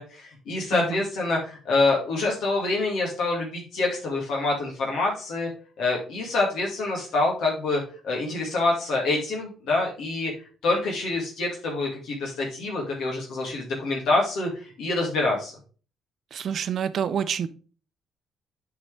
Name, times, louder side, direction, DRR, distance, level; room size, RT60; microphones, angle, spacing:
voice 1, 0.0-5.5 5.8-10.3 10.6-15.5, left 2 dB, 75° left, -1 dB, 2.2 m, -26 dB
voice 2, 0.7-1.0 16.3-17.5, right 8 dB, 60° right, 13 dB, 0.6 m, -28 dB
7.9 x 4.8 x 3.4 m, 0.38 s
supercardioid pair, 75°, 0 cm